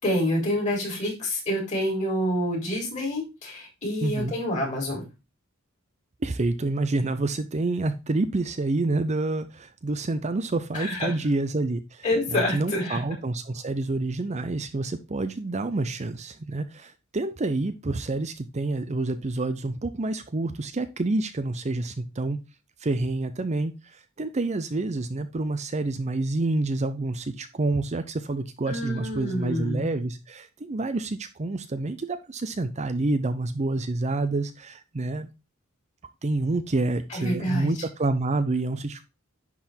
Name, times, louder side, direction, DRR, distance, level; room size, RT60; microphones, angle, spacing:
voice 1, 0.0-5.0 10.7-11.1 12.0-13.0 28.7-29.9 37.1-37.7, left 1 dB, 35° left, -2 dB, 4.1 m, -27 dB
voice 2, 4.0-4.3 6.2-12.0 12.3-22.4 22.8-35.3 36.2-39.0, right 2 dB, 35° right, 10 dB, 0.6 m, -28 dB
10.5 x 4.0 x 4.4 m, 0.27 s
head